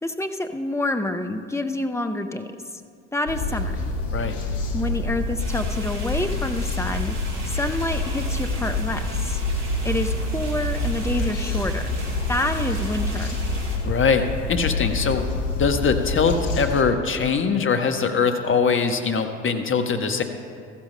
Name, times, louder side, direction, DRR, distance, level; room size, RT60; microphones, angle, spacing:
voice 1, 0.0-2.8 3.1-3.8 4.7-7.1 7.4-9.4 9.8-11.8 12.3-13.4, left 2 dB, 5° left, 7 dB, 0.7 m, -28 dB
sound 1, 3.3-16.8, left 2 dB, 70° left, 1.1 m, -27 dB
sound 2, 5.4-13.8, right 2 dB, 45° right, 2.3 m, -39 dB
voice 2, 13.8-15.2 15.6-20.2, left 5 dB, 35° left, 7 dB, 1.0 m, -22 dB
14.5 x 12.5 x 2.2 m, 2.2 s
hypercardioid pair, 55°, 37 cm